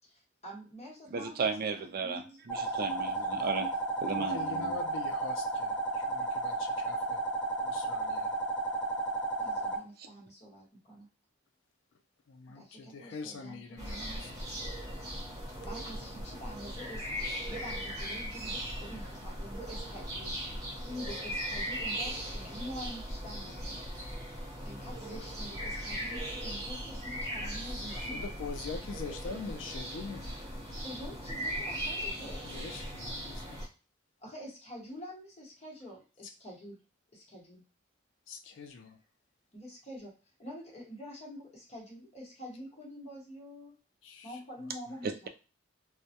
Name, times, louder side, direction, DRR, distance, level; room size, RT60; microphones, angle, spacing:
voice 1, 0.0-2.8 9.4-11.1 12.5-14.5 15.1-15.2 15.6-17.1 17.5-20.4 20.8-23.7 24.6-28.3 30.8-32.5 34.2-36.8 37.1-37.6 39.5-40.1 40.4-43.7 44.2-45.3, equal, 35° left, -2 dB, 1.0 m, -46 dB
voice 2, 1.1-3.7 4.0-4.7 45.0-45.3, right 4 dB, 50° right, 7 dB, 0.4 m, -34 dB
sound 1, 2.5-9.8, right 2 dB, 5° left, 0.9 m, -33 dB
voice 3, 4.1-7.2 7.6-8.3 12.3-14.3 27.9-30.4 32.4-33.6 38.3-39.0 44.0-44.4 44.9-45.0, left 4 dB, 75° left, 5 dB, 0.4 m, -44 dB
sound 2, 13.8-33.7, equal, 20° right, 1.1 m, -38 dB
2.2 x 2.0 x 2.8 m, 0.33 s
head